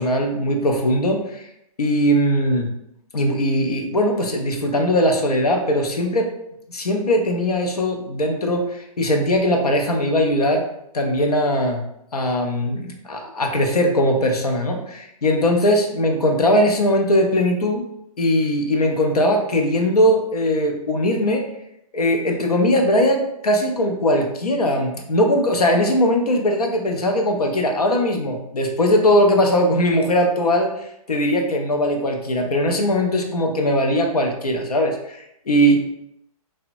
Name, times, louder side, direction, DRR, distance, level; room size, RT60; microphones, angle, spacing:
voice 1, 0.0-1.5 1.8-2.7 3.1-6.3 6.7-10.6 10.9-11.8 12.1-17.8 18.2-21.5 21.9-35.8, equal, 85° left, 2 dB, 0.6 m, -20 dB
2.7 x 2.2 x 2.5 m, 0.78 s
figure-of-eight pair, 120°, 19 cm